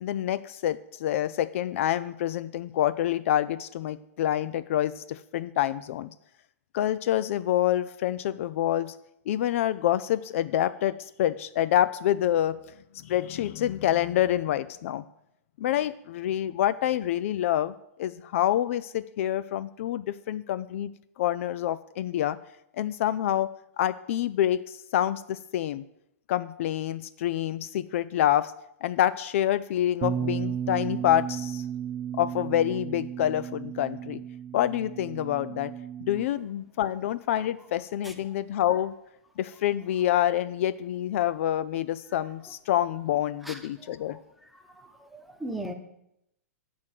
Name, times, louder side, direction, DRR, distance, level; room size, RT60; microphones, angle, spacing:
voice 1, 0.0-6.1 6.7-8.9 9.3-12.6 13.0-15.0 15.6-17.7 18.0-20.9 21.2-22.4 22.8-23.5 23.8-25.8 26.3-28.5 28.8-31.6 32.2-34.2 34.5-35.7 36.0-38.9 39.4-44.2, left 12 dB, 60° left, 16 dB, 0.4 m, -27 dB
Bass guitar, 30.0-36.3, right 9 dB, 25° right, 0.8 m, -34 dB
voice 2, 43.4-44.2 44.5-45.7, right 1 dB, ahead, 4 dB, 1.0 m, -39 dB
7.7 x 6.3 x 7.5 m, 0.80 s
hypercardioid pair, 135°, 8 cm